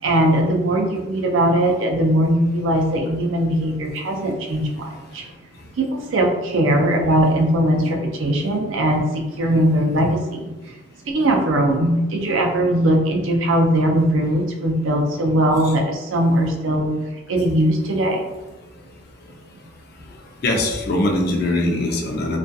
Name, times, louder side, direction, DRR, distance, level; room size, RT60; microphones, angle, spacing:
voice 1, 0.0-5.3 5.8-10.8 11.0-18.3, right 1 dB, 80° right, 2 dB, 0.5 m, -20 dB
voice 2, 20.4-22.4, left 1 dB, 55° left, 2 dB, 0.4 m, -22 dB
2.3 x 2.3 x 2.5 m, 1.1 s
head